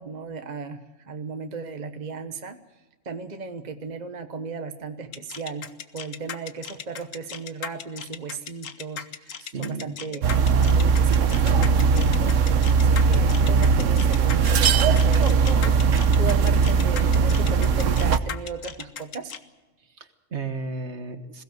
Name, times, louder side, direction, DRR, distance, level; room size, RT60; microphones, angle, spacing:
voice 1, 0.0-2.6 3.0-10.2 10.6-12.3 12.8-15.9 16.2-19.3, right 4 dB, 35° right, 7 dB, 1.3 m, -36 dB
sound 1, 5.1-19.4, left 8 dB, 85° left, 1.4 m, -37 dB
voice 2, 9.4-9.9 20.0-21.4, right 4 dB, 60° right, 9 dB, 1.7 m, -34 dB
sound 2, 10.2-18.2, right 5 dB, 75° right, 1.3 m, -19 dB
21.5 x 16.5 x 7.9 m, 1.2 s
omnidirectional pair, 1.3 m